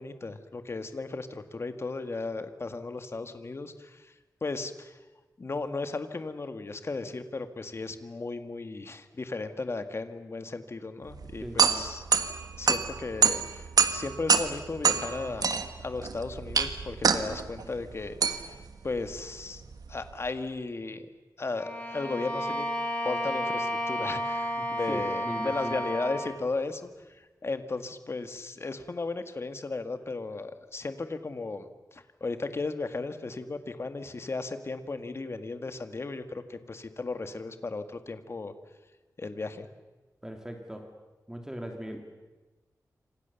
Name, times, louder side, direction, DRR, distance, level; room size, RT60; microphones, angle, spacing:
voice 1, 0.0-4.1 4.4-5.0 5.4-12.0 12.6-15.5 15.8-18.5 18.8-19.6 19.9-21.1 21.4-22.7 23.0-38.5 39.2-39.7, left 3 dB, 40° left, 9 dB, 1.9 m, -35 dB
sound 1, 11.1-20.3, right 6 dB, 75° right, 1.6 m, -27 dB
voice 2, 11.4-11.8 24.6-25.8 40.2-40.9 41.3-42.0, equal, 10° right, 3 dB, 2.7 m, -39 dB
Bowed string instrument, 21.5-26.4, equal, 20° left, 7.4 m, -32 dB
28.0 x 26.0 x 7.1 m, 1.2 s
wide cardioid pair, 125°, 7 cm